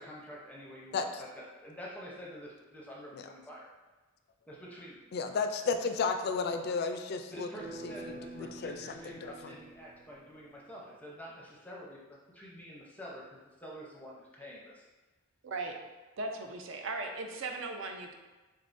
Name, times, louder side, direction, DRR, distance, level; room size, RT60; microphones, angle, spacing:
voice 1, 0.0-3.7 4.5-5.0 7.3-13.2 13.6-14.8, equal, 5° left, -4 dB, 0.6 m, -47 dB
voice 2, 5.1-7.5 7.8-9.6, left 4 dB, 50° left, 7 dB, 0.3 m, -34 dB
sound 1, 7.6-10.6, right 2 dB, 85° right, 1.0 m, -47 dB
voice 3, 15.4-15.8 16.2-18.1, right 3 dB, 65° right, 4 dB, 0.5 m, -38 dB
4.1 x 3.5 x 2.5 m, 1.2 s
head